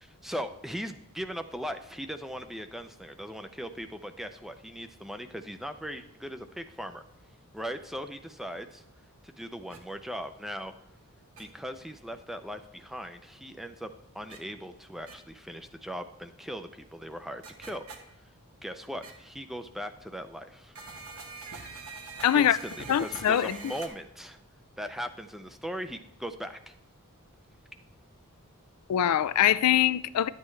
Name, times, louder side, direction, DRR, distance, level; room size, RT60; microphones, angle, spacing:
voice 1, 0.0-7.0 7.5-8.8 9.2-10.7 11.4-17.8 18.6-20.7 22.3-24.4 24.8-26.7, equal, ahead, 0.4 m, -39 dB
sound 1, 9.7-9.8 11.4-11.5 14.3-14.4 15.1-15.2 17.4-18.0 19.0-19.1 20.8-23.9, right 4 dB, 75° right, 1.2 m, -43 dB
voice 2, 22.2-22.6 22.9-23.6 28.9-30.3, left 10 dB, 85° left, 0.4 m, -23 dB
11.0 x 8.3 x 3.2 m
head